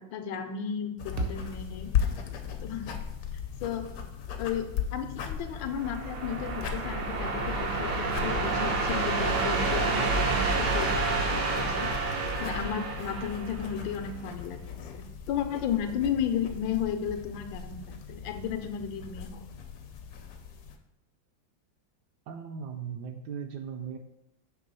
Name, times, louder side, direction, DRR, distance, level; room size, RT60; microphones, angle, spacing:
voice 1, 0.0-1.9 2.6-2.9 3.6-3.9 4.4-11.9 12.4-14.6 14.9-19.4, left 8 dB, 85° left, 7 dB, 1.4 m, -34 dB
sound 1, 1.0-20.8, left 8 dB, 70° left, 0.9 m, -37 dB
sound 2, 1.2-5.4, right 2 dB, 55° right, 0.6 m, -41 dB
sound 3, 5.5-14.0, right 3 dB, 90° right, 1.9 m, -29 dB
voice 2, 22.3-24.0, right 7 dB, 75° right, 5 dB, 1.0 m, -38 dB
6.1 x 3.3 x 5.4 m, 0.85 s
omnidirectional pair, 2.1 m